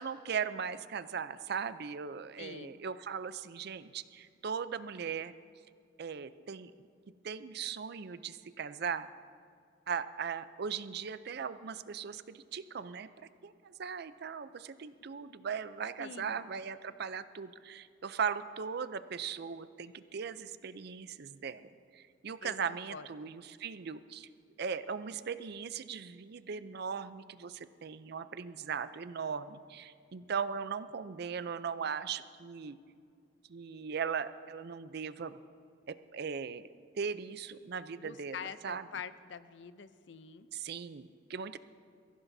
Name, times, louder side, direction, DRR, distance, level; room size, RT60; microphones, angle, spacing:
voice 1, 0.0-5.3 6.0-6.7 7.2-9.1 9.9-24.3 24.6-32.8 33.5-35.4 35.9-36.7 37.0-38.9 40.5-41.6, right 6 dB, 60° right, 13 dB, 0.5 m, -38 dB
voice 2, 2.4-2.8 16.0-16.4 22.4-23.3 38.0-40.5, left 6 dB, 70° left, 13 dB, 0.5 m, -46 dB
22.5 x 15.0 x 2.7 m, 2.3 s
head